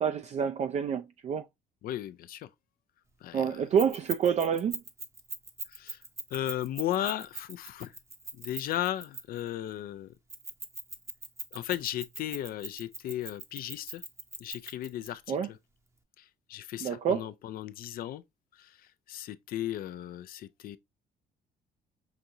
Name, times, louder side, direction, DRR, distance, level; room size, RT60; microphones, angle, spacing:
voice 1, 0.0-1.4 3.3-4.8 15.3-15.5 16.8-17.3, right 7 dB, 40° right, 0.4 m, -28 dB
voice 2, 1.8-2.5 3.2-3.6 5.7-6.0 6.3-7.9 8.3-10.1 11.5-14.0 14.4-15.6 16.2-18.2 18.6-18.8 19.1-20.8, left 12 dB, 60° left, 0.4 m, -35 dB
Keys jangling, 3.8-9.5 10.3-15.1, right 3 dB, 15° right, 0.7 m, -40 dB
5.9 x 2.6 x 2.7 m
cardioid pair, 110°, 17 cm